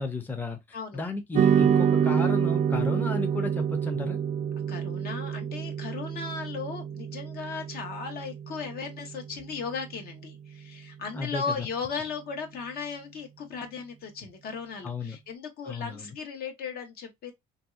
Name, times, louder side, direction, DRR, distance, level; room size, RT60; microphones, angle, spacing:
voice 1, 0.0-4.2 11.1-11.4 14.8-15.2 15.6-16.1, left 3 dB, 10° left, 0.5 m, -33 dB
sound 1, 1.3-9.9, right 8 dB, 45° right, 0.4 m, -27 dB
voice 2, 4.7-17.3, left 5 dB, 65° left, 1.0 m, -36 dB
3.0 x 2.6 x 2.4 m
cardioid pair, 110°, 17 cm